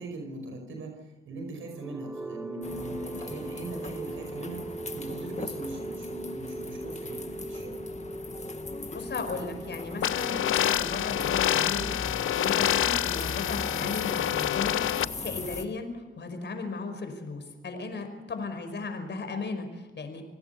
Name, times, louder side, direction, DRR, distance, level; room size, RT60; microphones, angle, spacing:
voice 1, 0.0-7.9, right 2 dB, 85° right, 3 dB, 5.2 m, -40 dB
sound 1, 1.6-15.5, right 2 dB, 5° right, 1.8 m, -41 dB
sound 2, 2.6-15.6, left 4 dB, 35° left, 1.9 m, -40 dB
voice 2, 8.9-20.2, left 3 dB, 60° left, 7 dB, 5.3 m, -36 dB
sound 3, 10.0-15.0, left 11 dB, 85° left, 0.6 m, -27 dB
27.5 x 18.5 x 7.0 m, 1.2 s
cardioid pair, 75°, 20 cm